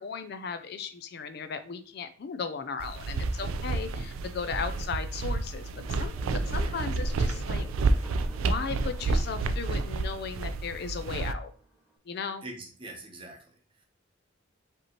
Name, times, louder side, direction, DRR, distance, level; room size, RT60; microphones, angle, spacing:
voice 1, 0.0-7.7 8.0-8.1 8.4-11.5 12.1-12.4, left 5 dB, 55° left, 10 dB, 0.4 m, -36 dB
sound 1, 2.8-11.3, right 3 dB, 85° right, 0.4 m, -30 dB
sound 2, 5.4-12.0, right 2 dB, 5° left, 0.6 m, -52 dB
voice 2, 12.4-13.8, right 2 dB, 25° right, 2 dB, 0.8 m, -44 dB
5.1 x 3.0 x 2.8 m, 0.41 s
head